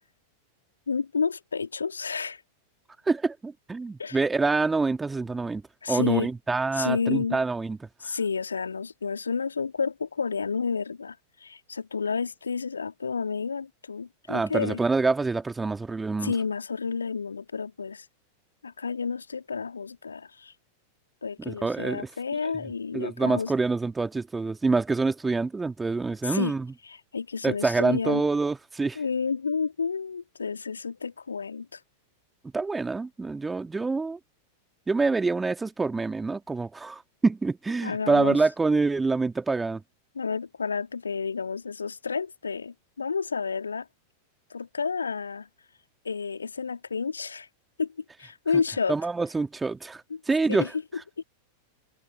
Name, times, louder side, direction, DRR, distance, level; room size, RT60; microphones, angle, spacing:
voice 1, 0.9-2.4 4.0-4.2 5.8-6.3 6.7-7.4 8.0-14.8 16.2-18.1 18.6-20.5 21.2-23.5 26.2-26.5 26.9-28.2 28.9-31.8 37.8-38.4 40.1-43.9 44.5-45.5 46.0-47.5 47.8-47.9 48.2-49.0 50.1-50.2 50.5-50.7 51.2-51.3, left 5 dB, 75° left, 3.0 m, -30 dB
voice 2, 3.1-5.6 5.9-7.8 14.3-16.3 21.4-22.1 22.9-26.7 27.4-29.0 32.5-34.2 34.9-39.8 48.9-50.7, right 3 dB, 10° right, 2.6 m, -26 dB
figure-of-eight pair, 90°, 0 cm